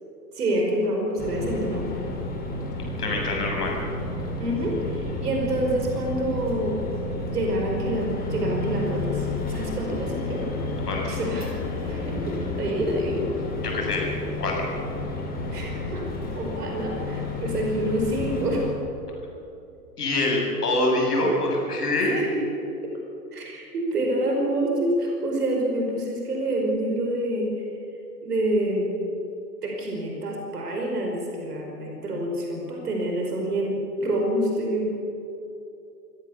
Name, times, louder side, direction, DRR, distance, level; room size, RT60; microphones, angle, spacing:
voice 1, 0.3-1.9 4.4-6.8 7.3-10.4 11.1-11.5 11.9-13.3 15.5-16.0 16.3-18.7 22.0-22.4 22.8-22.9 23.3-27.6 28.2-28.9 29.6-34.9, right 1 dB, 70° right, 1 dB, 5.2 m, -27 dB
sound 1, 1.2-18.7, left 2 dB, 20° left, 5.7 m, -31 dB
voice 2, 3.0-3.8 10.9-11.2 13.6-14.1 14.4-14.7 20.0-22.2, left 2 dB, 70° left, -1 dB, 7.4 m, -25 dB
27.0 x 17.0 x 7.1 m, 2.8 s
figure-of-eight pair, 100°, 48 cm